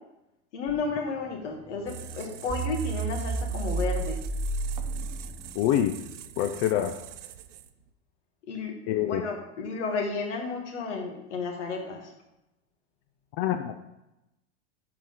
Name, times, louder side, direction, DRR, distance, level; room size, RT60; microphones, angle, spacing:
voice 1, 0.5-4.2 8.5-12.1, left 4 dB, 75° left, 1 dB, 2.3 m, -32 dB
sound 1, 0.7-1.0 1.6-1.8 2.1-2.2 2.5-5.7, right 3 dB, 15° right, 0.4 m, -31 dB
sound 2, 1.9-7.9, right 9 dB, 85° right, 0.7 m, -43 dB
voice 2, 5.5-6.0 6.4-7.0 8.9-9.2 13.4-13.7, left 11 dB, 45° left, 7 dB, 0.6 m, -25 dB
13.0 x 4.7 x 3.8 m, 0.91 s
hypercardioid pair, 120°, 36 cm